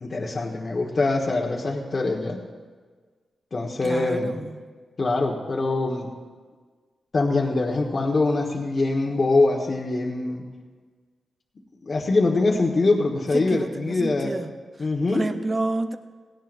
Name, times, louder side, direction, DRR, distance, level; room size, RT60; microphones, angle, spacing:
voice 1, 0.0-2.4 3.5-4.3 5.0-6.1 7.1-10.4 11.8-14.3 14.8-15.2, left 3 dB, 40° left, -2 dB, 1.4 m, -23 dB
voice 2, 3.8-4.6 13.3-14.5 15.1-16.0, right 2 dB, 30° right, 8 dB, 0.8 m, -29 dB
18.0 x 16.5 x 2.6 m, 1.5 s
cardioid pair, 95°, 0 cm